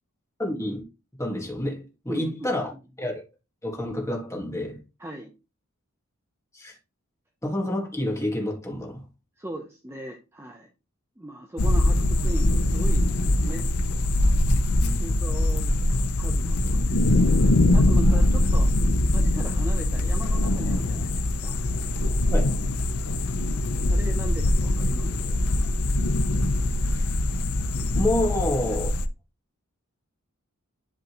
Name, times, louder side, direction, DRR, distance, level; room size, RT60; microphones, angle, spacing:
voice 1, 0.4-0.8 1.2-2.6 3.0-3.2 3.6-4.8 6.5-6.8 7.4-9.0 14.8-15.2 22.3-22.6 26.9-27.1 27.9-29.0, left 1 dB, 15° left, 1.8 m, -28 dB
voice 2, 2.1-2.8 5.0-5.3 9.4-10.7 11.2-13.7 14.9-17.3 17.7-18.7 19.1-21.6 23.9-25.4, right 1 dB, 10° right, 0.8 m, -39 dB
sound 1, 11.6-29.1, left 1 dB, 75° left, 0.7 m, -22 dB
11.0 x 4.0 x 3.0 m
head